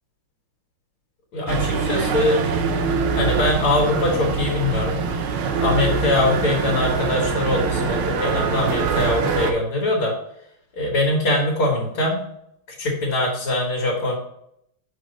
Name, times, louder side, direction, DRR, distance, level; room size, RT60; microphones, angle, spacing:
voice 1, 1.3-2.4 3.2-5.0 5.5-10.1 10.8-12.2 12.8-14.2, left 2 dB, 85° left, -2 dB, 2.4 m, -22 dB
sound 1, 1.5-9.5, right 5 dB, 80° right, 1.6 m, -23 dB
6.5 x 5.0 x 3.9 m, 0.74 s
omnidirectional pair, 2.3 m